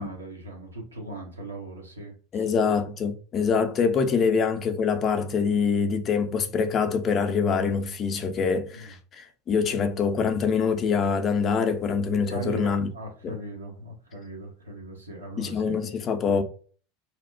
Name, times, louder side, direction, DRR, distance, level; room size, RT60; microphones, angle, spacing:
voice 1, 0.0-2.6 8.7-8.9 12.3-15.7, right 2 dB, 85° right, 0.8 m, -39 dB
voice 2, 2.3-12.9 13.2-13.3 15.4-16.4, left 5 dB, 35° left, 0.4 m, -25 dB
2.8 x 2.0 x 2.5 m
figure-of-eight pair, 80°, 0 cm